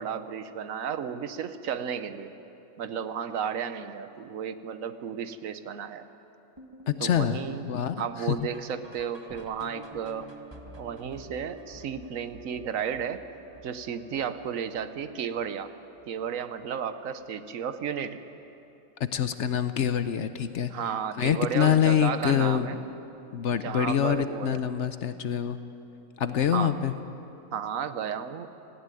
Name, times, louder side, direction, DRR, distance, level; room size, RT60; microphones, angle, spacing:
voice 1, 0.0-2.3 2.8-6.0 7.0-10.3 10.8-13.2 13.6-15.7 16.1-18.2 20.7-22.9 23.6-24.6 26.5-26.7 27.5-28.5, right 7 dB, 80° right, 11 dB, 1.3 m, -33 dB
sound 1, 6.6-15.7 16.0-16.3 16.6-16.7 17.2-17.3 17.8-17.9, right 1 dB, 20° right, 1.3 m, -49 dB
voice 2, 6.9-7.4 7.7-8.4 19.0-20.7 21.2-22.8 23.3-25.6 26.2-26.9, left 9 dB, 65° left, 11 dB, 1.0 m, -25 dB
Wind instrument woodwind instrument, 10.4-14.8, right 7 dB, 55° right, 3.1 m, -57 dB
18.0 x 16.0 x 9.1 m, 2.9 s
omnidirectional pair, 1.4 m